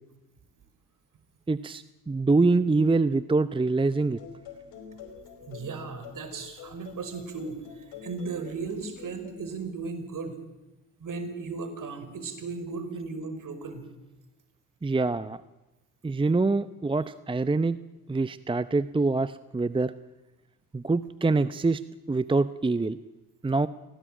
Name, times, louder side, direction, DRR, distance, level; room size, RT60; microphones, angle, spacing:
voice 1, 1.5-4.2 14.8-15.4 16.0-17.8 18.1-19.9 20.7-21.8 22.1-23.0 23.4-23.7, right 3 dB, 15° right, 15 dB, 0.8 m, -25 dB
sound 1, 3.9-9.8, left 6 dB, 70° left, 5.1 m, -46 dB
voice 2, 5.4-10.4 11.0-13.9, right 4 dB, 50° right, 9 dB, 5.3 m, -36 dB
24.5 x 18.0 x 9.1 m, 1.1 s
hypercardioid pair, 55°, 40 cm